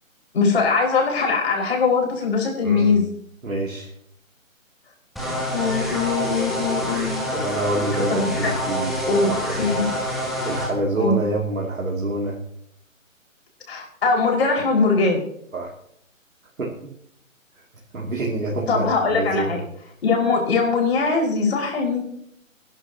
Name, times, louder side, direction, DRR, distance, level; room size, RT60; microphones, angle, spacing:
voice 1, 0.3-3.1 5.3-7.2 8.1-8.6 9.1-9.9 11.0-11.2 13.7-15.2 18.7-19.6 20.0-22.0, left 4 dB, 50° left, -1 dB, 5.5 m, -21 dB
voice 2, 2.6-3.0 3.4-3.9 7.3-9.8 10.4-12.4 15.5-15.7 16.6-16.9 17.9-19.6, right 2 dB, 85° right, -3 dB, 2.8 m, -27 dB
sound 1, 5.2-10.7, equal, ahead, 0.4 m, -27 dB
25.5 x 11.0 x 2.9 m, 0.72 s
figure-of-eight pair, 150°, 40 cm